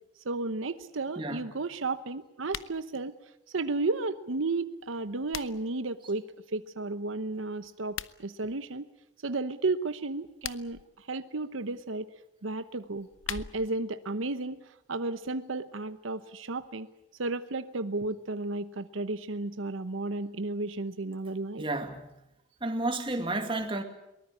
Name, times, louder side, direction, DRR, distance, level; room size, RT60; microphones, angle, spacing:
voice 1, 0.2-3.2 3.5-8.9 9.2-12.1 12.4-16.9 17.2-21.6, right 3 dB, 85° right, 0.9 m, -33 dB
sound 1, 2.4-2.8 4.8-5.8 7.8-8.2 10.2-10.8 12.8-13.8, left 9 dB, 85° left, 0.8 m, -40 dB
voice 2, 21.6-22.2 22.6-23.8, right 2 dB, 25° right, 2.2 m, -31 dB
23.0 x 19.5 x 8.6 m
head